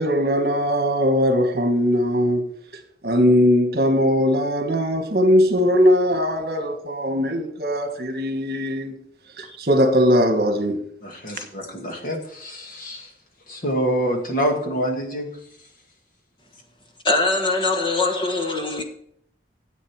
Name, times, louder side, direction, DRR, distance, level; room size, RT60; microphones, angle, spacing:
voice 1, 0.0-2.5 3.0-8.9 9.4-10.8, equal, 55° right, 1.5 m, -20 dB
voice 2, 11.0-13.1 13.5-15.3, equal, 50° left, 2.2 m, -26 dB
voice 3, 17.0-18.8, left 3 dB, 25° left, 1.3 m, -22 dB
10.0 x 8.2 x 4.8 m
head